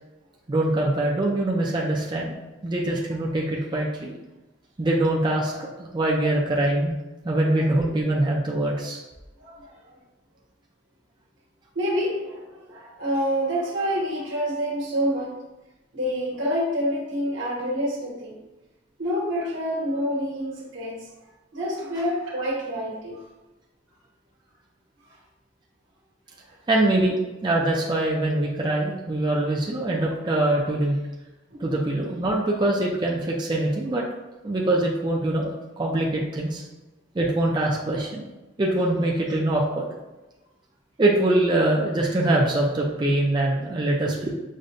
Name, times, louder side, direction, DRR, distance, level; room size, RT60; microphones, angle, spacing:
voice 1, 0.5-2.4 2.6-4.1 4.8-6.9 7.2-9.0 26.7-31.0 31.6-34.0 34.4-36.6 37.1-38.3 38.6-39.9 41.0-44.3, right 1 dB, 25° right, -3 dB, 0.4 m, -23 dB
voice 2, 9.4-9.7 11.7-15.4 15.9-18.4 19.0-21.1 21.5-23.2 31.5-31.7, equal, 80° right, -3 dB, 1.2 m, -27 dB
6.4 x 2.2 x 2.5 m, 1.0 s
head